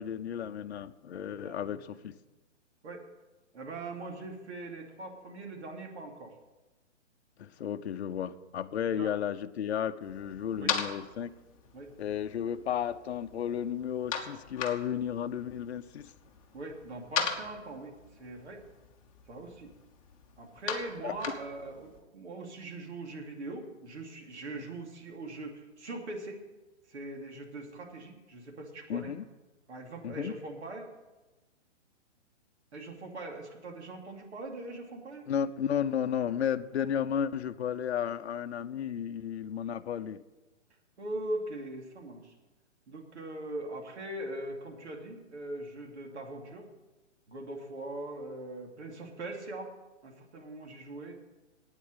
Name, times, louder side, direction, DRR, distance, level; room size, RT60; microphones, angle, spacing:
voice 1, 0.0-2.2 7.4-11.3 12.0-16.1 21.0-21.1 28.9-29.2 30.0-30.3 35.3-40.2, left 9 dB, 60° left, 9 dB, 0.7 m, -33 dB
voice 2, 1.3-1.8 2.8-3.1 3.5-6.4 8.9-9.1 10.6-10.8 11.7-11.9 16.5-18.6 19.3-19.7 20.4-26.4 26.9-29.1 29.7-30.9 32.7-35.2 41.0-42.3 42.9-46.7 47.3-49.7 50.0-51.2, right 2 dB, 70° right, 1 dB, 2.7 m, -41 dB
sound 1, 10.0-22.0, left 7 dB, 30° left, 1.2 m, -40 dB
9.2 x 8.1 x 8.9 m, 1.1 s
hypercardioid pair, 170°, 36 cm